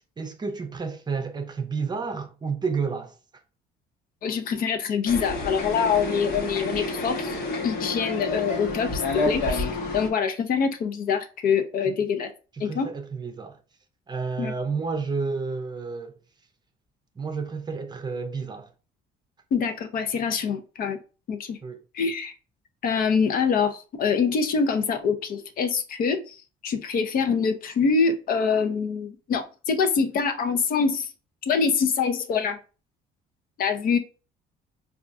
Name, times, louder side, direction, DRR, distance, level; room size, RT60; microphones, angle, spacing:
voice 1, 0.2-3.2 11.8-12.0 12.5-13.6 14.1-16.2 17.2-18.7 21.6-21.8, right 5 dB, 25° right, 0.6 m, -31 dB
voice 2, 4.2-9.7 9.9-12.3 12.6-12.9 14.4-14.5 19.5-21.0 21.3-21.6 21.9-22.3 22.8-26.4 26.6-31.1 31.5-32.6 33.6-34.0, left 6 dB, 60° left, 0.6 m, -25 dB
sound 1, 5.1-10.1, left 2 dB, 75° left, 1.1 m, -29 dB
4.4 x 2.4 x 2.5 m
cardioid pair, 110°, 17 cm